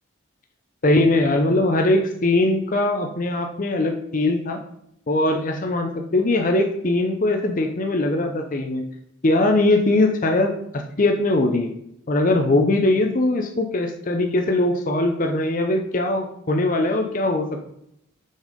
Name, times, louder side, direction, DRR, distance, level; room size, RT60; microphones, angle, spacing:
voice 1, 0.8-4.6 5.1-8.9 9.2-11.7 12.1-17.6, left 2 dB, 40° left, 3 dB, 0.6 m, -21 dB
6.4 x 5.5 x 5.1 m, 0.76 s
head